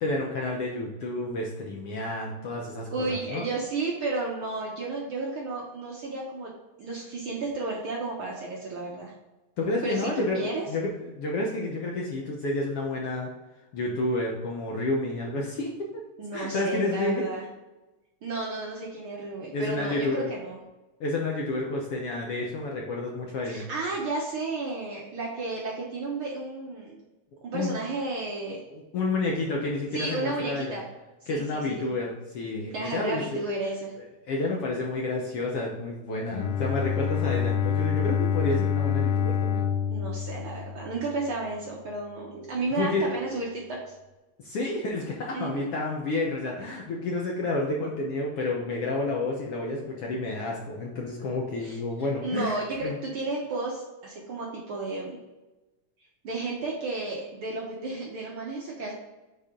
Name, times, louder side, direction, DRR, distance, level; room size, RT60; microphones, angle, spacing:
voice 1, 0.0-3.4 9.6-13.3 13.7-16.0 16.3-17.3 19.5-20.3 21.0-23.7 27.5-27.7 28.7-30.8 31.3-33.4 34.3-39.7 42.7-43.1 44.4-53.0, left 2 dB, 65° left, -1 dB, 1.6 m, -30 dB
voice 2, 2.9-9.1 9.8-10.6 16.2-17.4 18.2-20.6 23.4-27.0 27.4-28.6 29.9-30.8 31.2-31.8 32.7-33.9 39.9-43.9 45.3-45.7 51.6-51.8 52.2-55.2 56.2-58.9, right 3 dB, 65° right, -3 dB, 1.4 m, -32 dB
Bowed string instrument, 36.3-41.2, left 7 dB, 90° left, 1.4 m, -27 dB
8.5 x 4.2 x 3.7 m, 1.1 s
omnidirectional pair, 3.5 m